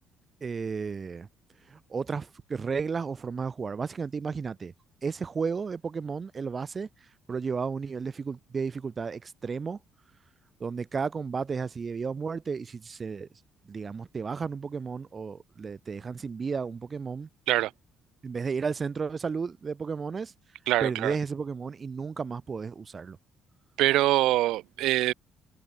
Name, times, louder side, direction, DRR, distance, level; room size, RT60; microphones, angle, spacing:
voice 1, 0.4-1.3 1.7-4.7 5.0-6.9 7.3-9.8 10.6-13.3 13.7-17.3 18.2-20.3 20.8-23.2, right 5 dB, 25° right, 3.7 m, -33 dB
voice 2, 20.7-21.2 23.8-25.1, right 16 dB, 80° right, 7.5 m, -24 dB
cardioid pair, 165°, 0 cm